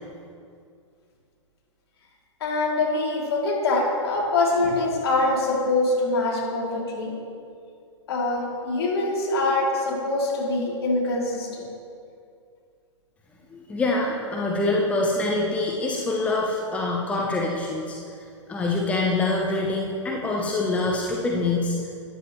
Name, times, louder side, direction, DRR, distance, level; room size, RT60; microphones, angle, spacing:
voice 1, 2.4-7.1 8.1-11.6, left 2 dB, 55° left, -3 dB, 3.1 m, -24 dB
voice 2, 13.5-18.0 18.5-21.8, left 2 dB, 10° left, -2 dB, 0.9 m, -25 dB
13.0 x 10.0 x 3.2 m, 2.4 s
figure-of-eight pair, 115°, 16 cm